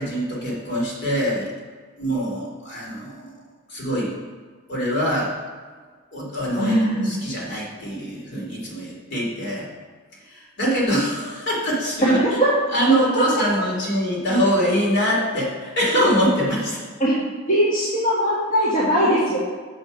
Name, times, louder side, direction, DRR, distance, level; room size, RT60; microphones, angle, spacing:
voice 1, 0.0-1.5 2.0-3.3 3.7-4.1 4.7-5.3 6.1-9.6 10.3-12.2 12.7-16.8, equal, 55° left, -4 dB, 2.6 m, -23 dB
voice 2, 6.6-7.1 12.2-12.5 13.1-13.2 17.0-17.2 17.5-19.4, equal, 35° left, -9 dB, 1.7 m, -20 dB
7.1 x 5.3 x 6.2 m, 1.5 s
head